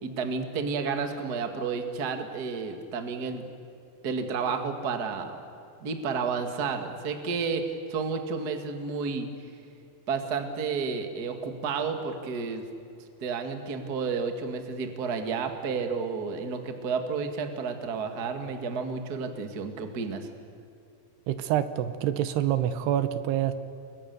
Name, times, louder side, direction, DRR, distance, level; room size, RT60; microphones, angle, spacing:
voice 1, 0.0-3.5 4.0-5.4 5.8-9.3 10.1-12.7 13.2-20.3, right 5 dB, 40° right, 6 dB, 1.5 m, -31 dB
voice 2, 21.3-23.5, right 11 dB, 80° right, 12 dB, 3.0 m, -26 dB
29.5 x 23.0 x 6.9 m, 2.6 s
omnidirectional pair, 4.8 m